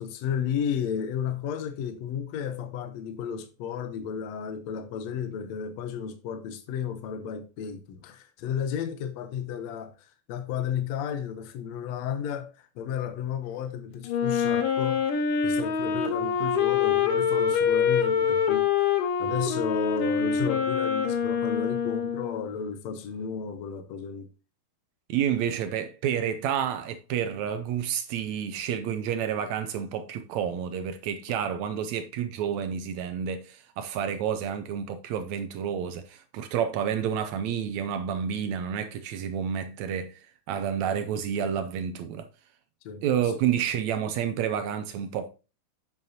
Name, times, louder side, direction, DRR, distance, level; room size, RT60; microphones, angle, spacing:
voice 1, 0.0-15.1 15.4-24.3 42.9-43.0, left 8 dB, 70° left, 1.8 m, -33 dB
Wind instrument woodwind instrument, 14.1-22.5, left 7 dB, 85° left, 2.6 m, -25 dB
voice 2, 25.1-40.2 40.5-42.2 43.0-45.3, right 8 dB, 75° right, 1.7 m, -29 dB
7.9 x 7.2 x 2.8 m
omnidirectional pair, 3.7 m